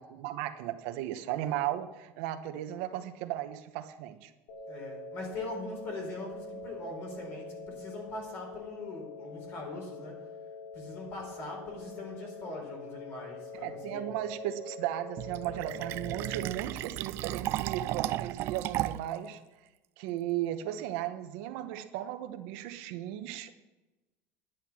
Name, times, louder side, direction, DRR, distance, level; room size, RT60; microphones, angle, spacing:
voice 1, 0.0-4.3 13.6-19.4 20.0-23.5, right 12 dB, 75° right, 7 dB, 1.1 m, -36 dB
sound 1, 4.5-16.5, left 2 dB, 80° left, 4.5 m, -44 dB
voice 2, 4.7-10.3 10.7-14.2, left 2 dB, 40° left, 1 dB, 4.5 m, -42 dB
Fill (with liquid), 15.2-19.2, right 15 dB, 45° right, 0.4 m, -34 dB
11.0 x 10.0 x 6.2 m, 1.1 s
cardioid pair, 170°, 6 cm